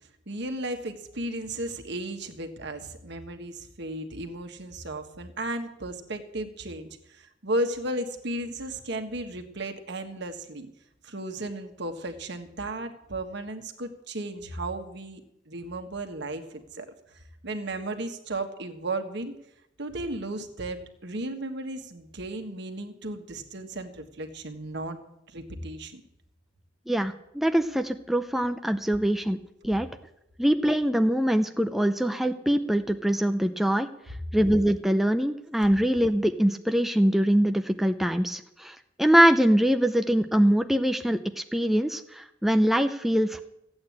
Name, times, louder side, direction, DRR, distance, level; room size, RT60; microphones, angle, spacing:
voice 1, 0.3-10.7 11.0-15.2 15.5-16.4 16.7-16.9 17.4-19.3 19.8-25.0 25.3-26.0, right 1 dB, 65° right, 6 dB, 1.6 m, -34 dB
voice 2, 26.9-29.4 29.6-29.9 30.4-33.9 34.3-43.4, equal, ahead, 7 dB, 0.5 m, -23 dB
14.5 x 8.8 x 8.5 m, 0.82 s
head